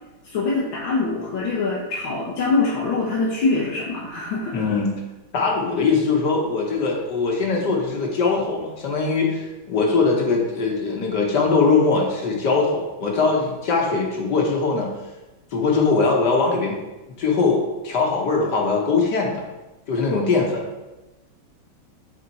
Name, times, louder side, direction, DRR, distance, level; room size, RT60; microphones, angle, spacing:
voice 1, 0.2-4.6, left 3 dB, 85° left, -6 dB, 1.8 m, -24 dB
voice 2, 4.5-5.0 5.3-14.9 15.5-16.8 17.2-19.4 19.9-20.6, left 4 dB, 65° left, -1 dB, 1.6 m, -21 dB
7.6 x 3.7 x 4.1 m, 1.1 s
omnidirectional pair, 2.1 m